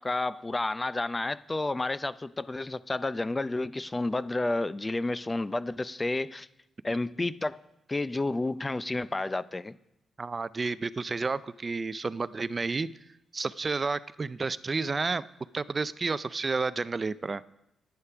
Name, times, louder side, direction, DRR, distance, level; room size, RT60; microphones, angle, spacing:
voice 1, 0.0-6.5 6.8-7.6 7.9-9.8, left 2 dB, 25° left, 16 dB, 0.5 m, -30 dB
voice 2, 10.2-12.9 13.3-15.3 15.5-17.4, right 4 dB, 40° right, 16 dB, 0.4 m, -31 dB
9.7 x 9.5 x 5.8 m, 0.87 s
supercardioid pair, 60°, 0 cm